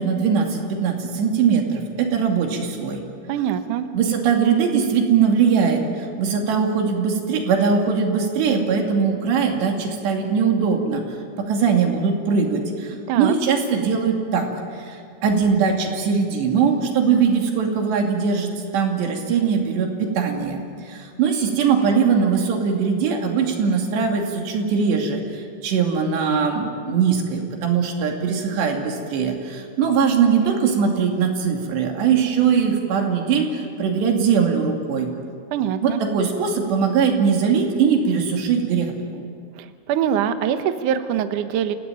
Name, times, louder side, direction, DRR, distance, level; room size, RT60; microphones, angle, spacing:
voice 1, 0.0-3.0 3.9-11.0 11.4-35.1 35.8-39.2, right 6 dB, 85° right, 2 dB, 4.8 m, -21 dB
voice 2, 3.3-3.9 13.1-13.3 35.5-36.0 39.6-41.8, right 9 dB, 70° right, 9 dB, 2.0 m, -23 dB
29.0 x 17.0 x 9.1 m, 2.3 s
omnidirectional pair, 4.8 m